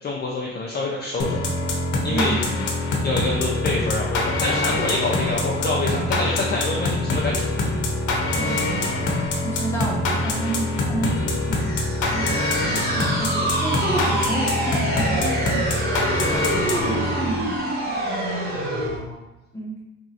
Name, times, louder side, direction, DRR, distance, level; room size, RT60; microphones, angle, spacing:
voice 1, 0.0-1.4 2.0-2.4 3.0-7.7 18.5-19.2, left 2 dB, 35° left, -3 dB, 0.5 m, -27 dB
sound 1, 1.2-17.5, left 2 dB, 75° left, 0.7 m, -24 dB
voice 2, 2.1-2.6 8.3-8.8 9.4-11.8 12.1-15.8 16.3-17.6 19.5-19.8, right 2 dB, 10° left, -3 dB, 0.8 m, -30 dB
sound 2, 11.5-19.0, right 1 dB, 35° right, 0.8 m, -26 dB
3.0 x 2.6 x 2.7 m, 1.0 s
cardioid pair, 90°, 30 cm